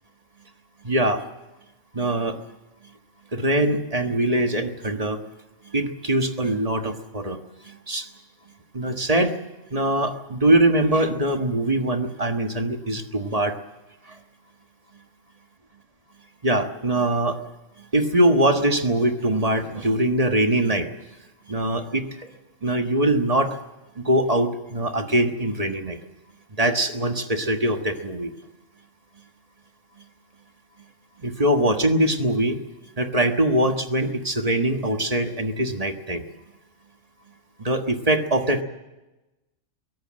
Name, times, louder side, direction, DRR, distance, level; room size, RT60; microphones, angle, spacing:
voice 1, 0.8-1.2 1.9-2.4 3.3-5.2 5.7-7.4 7.6-8.1 8.7-9.4 9.7-13.6 16.4-17.4 17.9-20.9 21.5-22.3 22.6-23.6 24.0-26.0 26.6-28.3 31.2-32.6 33.0-36.2 37.6-38.6, right 1 dB, 30° right, 6 dB, 1.5 m, -22 dB
23.0 x 17.0 x 7.6 m, 1.0 s
omnidirectional pair, 1.3 m